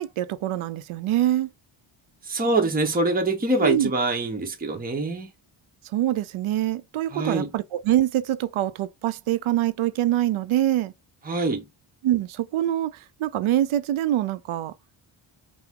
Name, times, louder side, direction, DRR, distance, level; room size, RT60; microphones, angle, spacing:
voice 1, 0.0-1.5 3.6-3.9 5.9-10.9 12.0-14.7, right 13 dB, 75° right, 0.5 m, -24 dB
voice 2, 2.2-5.3 7.1-7.5 11.2-11.7, right 2 dB, 20° right, 0.8 m, -24 dB
5.8 x 2.0 x 3.6 m
wide cardioid pair, 145°, 49 cm